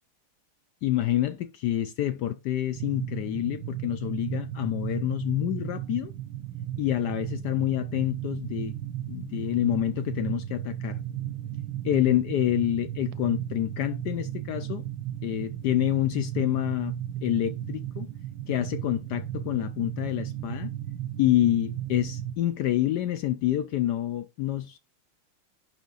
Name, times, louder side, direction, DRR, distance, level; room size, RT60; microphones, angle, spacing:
voice 1, 0.8-6.1 6.8-8.7 9.1-11.0 11.8-14.8 15.2-16.9 17.2-18.1 18.5-20.7 21.2-24.8, left 13 dB, 75° left, 0.9 m, -27 dB
sound 1, 2.7-22.3, right 11 dB, 75° right, 1.3 m, -35 dB
10.5 x 3.5 x 3.9 m
omnidirectional pair, 2.3 m